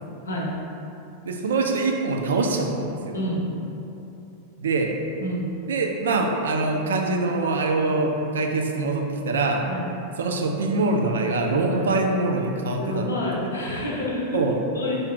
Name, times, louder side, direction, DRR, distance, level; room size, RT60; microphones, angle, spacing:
voice 1, 0.2-0.6 3.1-3.5 5.2-5.5 9.7-9.9 11.6-11.9 12.8-14.5 14.7-15.1, left 1 dB, 70° left, -3 dB, 0.6 m, -28 dB
voice 2, 1.2-3.2 4.6-5.0 5.7-9.7 10.2-13.1 14.3-14.6, right 3 dB, 65° right, 2 dB, 0.3 m, -24 dB
3.8 x 2.4 x 3.4 m, 2.8 s
figure-of-eight pair, 90°, 0 cm